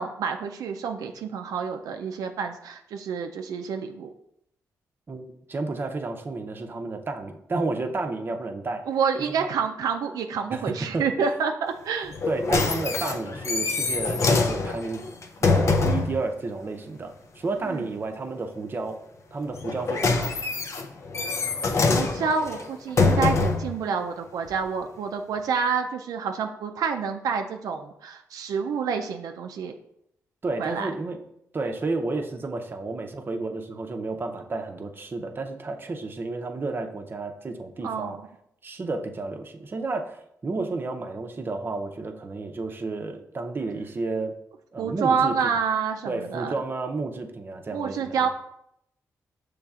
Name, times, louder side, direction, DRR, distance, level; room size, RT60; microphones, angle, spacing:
voice 1, 0.0-4.1 8.9-12.1 17.7-17.9 21.4-21.5 21.9-29.7 30.6-30.9 37.8-38.2 44.8-46.6 47.7-48.3, right 6 dB, 85° right, 5 dB, 0.3 m, -28 dB
voice 2, 5.1-8.8 9.2-9.5 10.5-11.1 12.3-15.0 15.4-19.0 19.3-20.3 30.4-31.2 31.5-38.2 38.6-44.3 44.7-45.5 46.0-48.3, right 3 dB, 35° right, 4 dB, 0.6 m, -31 dB
sound 1, 12.1-16.2 19.5-23.7 24.5-24.6, left 3 dB, 55° left, 0.5 m, -24 dB
6.7 x 3.2 x 2.4 m, 0.77 s
cardioid pair, 75°, 6 cm